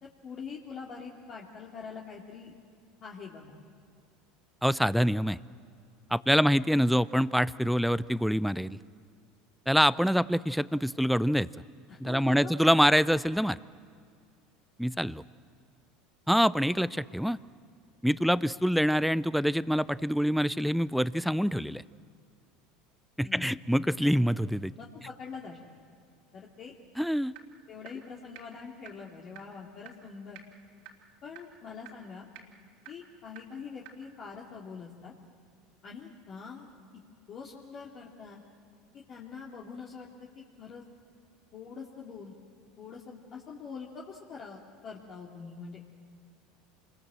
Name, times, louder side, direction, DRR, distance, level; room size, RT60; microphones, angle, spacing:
voice 1, 0.0-2.6 3.0-3.6 11.9-12.5 23.2-23.6 24.8-25.8 26.3-26.7 27.7-30.4 31.2-32.3 32.9-35.1 35.8-36.7 37.3-38.4 38.9-40.8 41.5-42.3 42.8-45.9, left 5 dB, 45° left, -3 dB, 2.7 m, -44 dB
voice 2, 4.6-5.4 6.1-8.8 9.7-11.5 12.0-13.6 14.8-15.2 16.3-17.4 18.0-21.8 23.2-24.7 27.0-27.3, equal, ahead, 17 dB, 0.5 m, -25 dB
sound 1, 27.4-27.5 27.8-27.9 28.4-28.5 28.9-29.0 29.4-29.5 29.9-30.0 30.3-30.4 30.9-31.0 31.4-31.5 31.9-32.0 32.3-32.4 32.9-33.0 33.4-33.5 33.9-34.0, right 12 dB, 70° right, 3.3 m, -45 dB
26.5 x 21.0 x 7.6 m, 2.3 s
hypercardioid pair, 85°, 0 cm